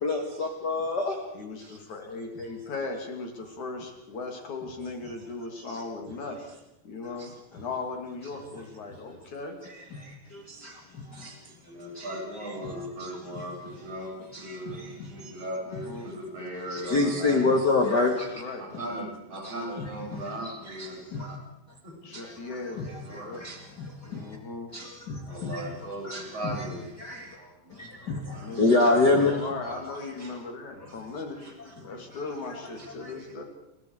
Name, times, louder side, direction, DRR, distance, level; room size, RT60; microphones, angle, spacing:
voice 1, 0.0-1.2 5.7-5.8 7.2-7.3 9.6-11.4 11.9-12.2 12.6-12.7 13.0-13.4 14.3-15.3 16.7-18.4 19.4-21.4 22.1-22.4 22.8-24.4 24.7-25.7 26.0-26.5 27.0-27.4 27.7-29.4 30.2-30.3 30.8-30.9 31.8-31.9 33.0-33.1, left 3 dB, 35° left, 3 dB, 2.3 m, -28 dB
voice 2, 1.3-6.5 6.8-9.6 15.8-16.1 18.3-18.6 22.0-23.4 24.1-24.7 28.4-31.6 31.8-33.4, left 3 dB, 60° left, 3 dB, 4.4 m, -37 dB
voice 3, 11.7-17.4 18.6-21.4 21.8-21.9 22.6-23.5 25.3-26.9 27.3-28.5 28.9-29.0 29.4-29.9, right 1 dB, 45° right, -1 dB, 8.9 m, -38 dB
29.5 x 22.0 x 5.0 m, 0.90 s
omnidirectional pair, 3.9 m